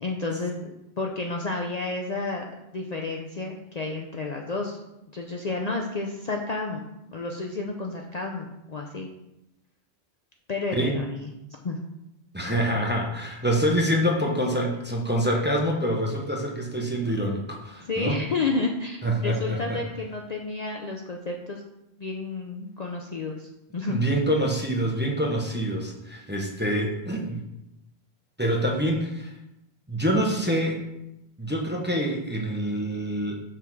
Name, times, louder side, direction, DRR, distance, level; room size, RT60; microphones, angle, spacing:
voice 1, 0.0-2.5 2.7-4.8 5.1-6.8 7.1-9.1 10.5-11.3 11.6-11.8 17.8-21.6 22.0-24.0, left 3 dB, 45° left, 1 dB, 0.6 m, -31 dB
voice 2, 12.3-18.2 19.0-19.8 23.9-27.4 28.4-29.3 29.9-30.8 31.4-33.3, equal, 10° right, -2 dB, 0.9 m, -26 dB
5.9 x 3.6 x 6.0 m, 0.89 s
omnidirectional pair, 1.1 m